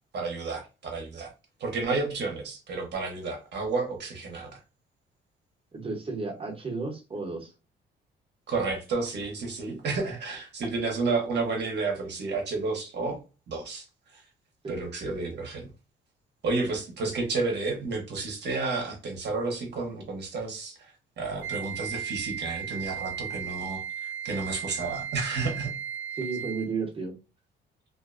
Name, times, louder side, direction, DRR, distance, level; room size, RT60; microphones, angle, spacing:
voice 1, 0.1-1.3 1.6-4.6 8.5-13.9 14.1-14.2 14.7-15.7 16.4-20.9 21.2-25.8, right 3 dB, 60° right, 0.8 m, -31 dB
voice 2, 5.7-7.5 14.6-14.7 26.2-27.1, right 4 dB, 30° right, 0.8 m, -33 dB
Wind instrument woodwind instrument, 21.4-26.8, right 8 dB, 80° right, 0.4 m, -36 dB
2.4 x 2.2 x 2.4 m
cardioid pair, 90°, 20 cm